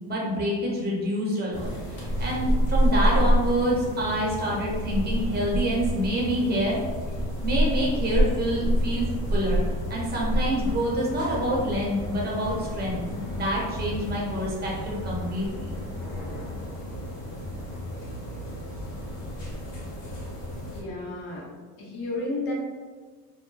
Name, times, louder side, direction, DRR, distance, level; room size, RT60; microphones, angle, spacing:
voice 1, 0.1-6.8 7.4-9.6 9.9-13.0 13.3-15.6, equal, 25° right, -4 dB, 0.9 m, -27 dB
sound 1, 1.5-20.8, equal, 50° left, 1.0 m, -29 dB
voice 2, 20.7-21.5 21.8-22.5, left 2 dB, 75° left, -3 dB, 0.9 m, -32 dB
2.2 x 2.1 x 3.0 m, 1.5 s
cardioid pair, 115°, 37 cm